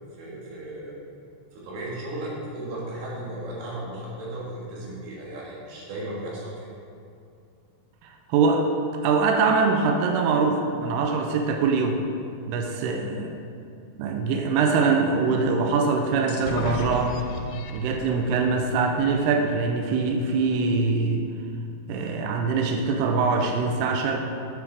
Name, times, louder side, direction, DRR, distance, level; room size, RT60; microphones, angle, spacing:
voice 1, 0.2-0.9 1.5-6.7, right 1 dB, 65° right, -5 dB, 3.4 m, -35 dB
voice 2, 8.0-8.7 9.0-12.0 12.5-13.4 14.0-17.2 17.7-21.2 21.9-24.2, right 4 dB, 90° right, 3 dB, 2.3 m, -23 dB
sound 1, 16.3-20.0, left 4 dB, 90° left, 3.1 m, -37 dB
8.3 x 8.2 x 3.4 m, 2.5 s
omnidirectional pair, 5.4 m